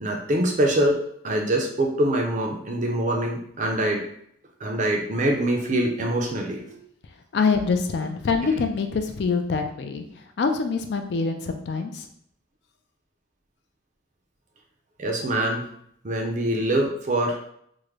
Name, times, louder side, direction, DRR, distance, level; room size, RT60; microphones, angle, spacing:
voice 1, 0.0-4.0 4.6-6.8 15.0-15.6 16.0-17.4, right 1 dB, 40° right, 1 dB, 0.5 m, -24 dB
voice 2, 7.3-10.0 10.4-12.1, left 4 dB, 55° left, 6 dB, 0.3 m, -25 dB
3.5 x 2.0 x 3.1 m, 0.69 s
head